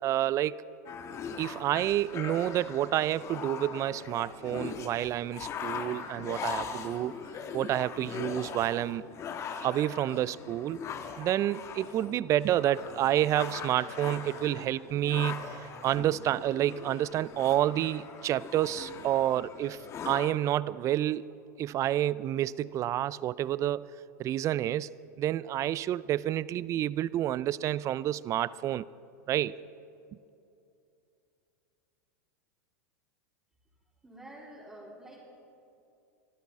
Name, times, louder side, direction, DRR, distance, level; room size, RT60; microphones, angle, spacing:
voice 1, 0.0-0.6 1.4-7.1 7.5-9.0 9.6-10.8 11.2-15.5 15.8-19.8 20.0-21.3 21.6-23.9 24.2-24.9 25.2-28.8 29.3-29.6, right 12 dB, 35° right, 20 dB, 0.4 m, -29 dB
sound 1, 0.8-20.3, left 6 dB, 35° left, 1.4 m, -41 dB
voice 2, 34.0-35.3, right 1 dB, 10° right, -9 dB, 3.5 m, -48 dB
24.5 x 13.5 x 3.7 m, 2.7 s
hypercardioid pair, 105°, 9 cm